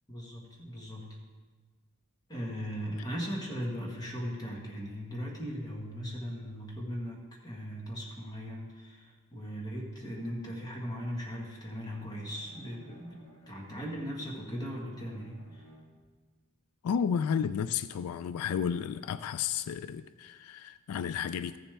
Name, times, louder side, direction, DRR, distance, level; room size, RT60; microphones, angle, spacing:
voice 1, 0.1-1.2 2.3-13.2 13.5-15.6, equal, 20° left, -2 dB, 1.6 m, -38 dB
Bowed string instrument, 11.8-16.2, equal, 60° left, 1.7 m, -57 dB
voice 2, 16.8-21.6, left 7 dB, 85° left, 14 dB, 0.3 m, -32 dB
14.0 x 7.1 x 3.4 m, 1.4 s
head